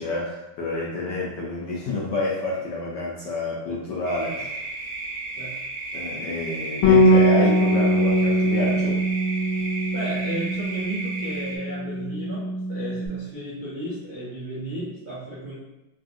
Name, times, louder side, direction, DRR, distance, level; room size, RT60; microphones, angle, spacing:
voice 1, 0.0-4.6 5.9-9.0, left 3 dB, 70° left, -4 dB, 1.1 m, -28 dB
sound 1, 4.1-11.6, right 2 dB, 75° right, 1.4 m, -34 dB
Bass guitar, 6.8-13.1, equal, 85° left, 1.5 m, -21 dB
voice 2, 9.9-15.5, right 1 dB, 50° right, -12 dB, 0.5 m, -34 dB
3.4 x 2.5 x 2.5 m, 0.93 s
omnidirectional pair, 2.2 m